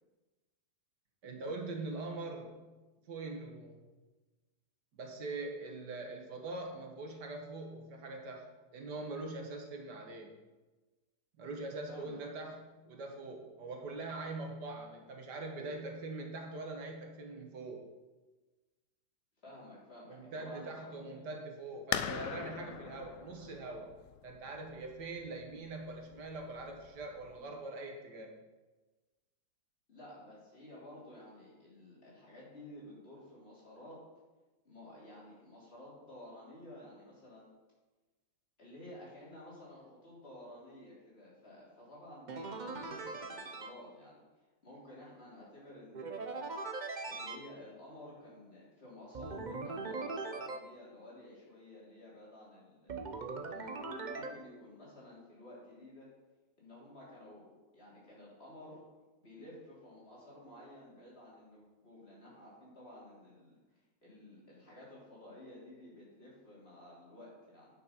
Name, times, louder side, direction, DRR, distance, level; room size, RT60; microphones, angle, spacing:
voice 1, 1.2-2.6 3.1-3.9 5.0-8.5 8.7-10.3 11.4-17.8 20.1-23.9 24.2-28.4, right 2 dB, 80° right, 2 dB, 1.9 m, -43 dB
voice 2, 11.9-12.2 19.4-21.3 29.9-34.0 34.7-37.5 38.6-44.2 44.6-46.5 47.1-52.9 53.5-56.1 56.6-58.8 59.2-63.5 64.0-67.7, left 1 dB, 35° left, -6 dB, 3.5 m, -53 dB
sound 1, 21.9-27.4, left 10 dB, 80° left, 1.2 m, -42 dB
sound 2, 42.3-43.7 45.9-47.4 49.1-50.6 52.9-54.3, right 3 dB, 50° right, 0.5 m, -40 dB
9.5 x 6.3 x 5.6 m, 1.2 s
omnidirectional pair, 1.8 m